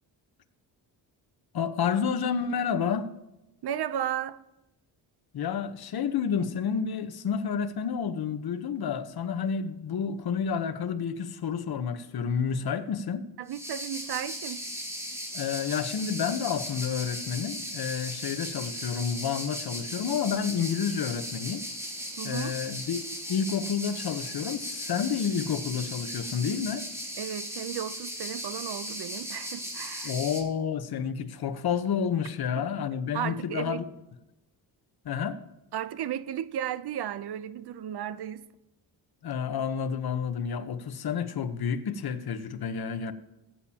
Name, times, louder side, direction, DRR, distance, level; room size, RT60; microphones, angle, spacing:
voice 1, 1.5-3.1 5.3-13.3 15.3-21.6 22.2-23.0 23.3-26.9 30.0-33.8 35.0-35.4 39.2-43.1, left 7 dB, 60° left, 1.1 m, -30 dB
voice 2, 3.6-4.4 13.4-14.6 22.2-22.5 27.2-30.1 32.6-32.7 33.1-33.8 35.7-38.4, right 10 dB, 65° right, 0.8 m, -34 dB
sound 1, 13.5-30.4, equal, 5° right, 2.8 m, -37 dB
18.0 x 8.8 x 2.9 m
cardioid pair, 90°, 42 cm